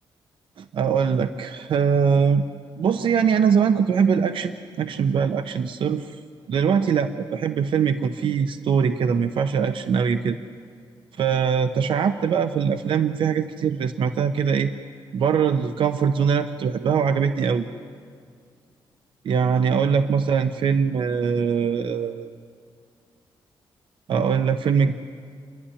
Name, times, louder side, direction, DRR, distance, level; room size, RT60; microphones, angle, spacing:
voice 1, 0.6-2.5 2.8-6.1 6.5-10.4 11.2-14.7 15.1-17.7 19.2-22.3 24.1-24.9, right 6 dB, 70° right, 9 dB, 0.9 m, -22 dB
29.0 x 11.5 x 10.0 m, 2.1 s
cardioid pair, 115°, 9 cm